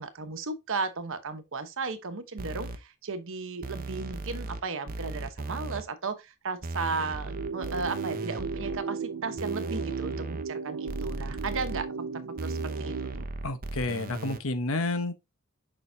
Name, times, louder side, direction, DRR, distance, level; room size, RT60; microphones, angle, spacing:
voice 1, 0.0-13.1, right 4 dB, 65° right, 1.0 m, -35 dB
sound 1, 2.4-2.8 3.6-4.6 4.9-5.8 6.6-8.8 9.4-10.4 10.9-11.8 12.4-14.4, right 2 dB, 40° right, 0.8 m, -37 dB
sound 2, 7.2-13.2, right 5 dB, 85° right, 0.5 m, -36 dB
voice 2, 13.4-15.1, left 2 dB, 65° left, 1.0 m, -30 dB
6.9 x 5.4 x 2.7 m
head